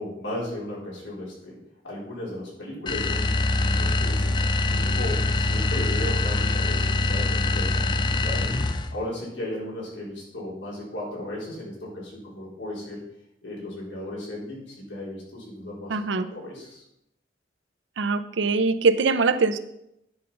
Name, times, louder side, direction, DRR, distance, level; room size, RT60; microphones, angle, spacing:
voice 1, 0.0-1.6 1.8-3.3 3.6-8.5 8.9-13.0 13.4-16.8, left 1 dB, 80° left, -5 dB, 3.9 m, -35 dB
sound 1, 2.9-9.0, left 2 dB, 25° left, 0.5 m, -24 dB
voice 2, 15.9-16.3 18.0-19.6, right 4 dB, 85° right, 11 dB, 0.6 m, -22 dB
9.9 x 5.3 x 5.6 m, 0.82 s
head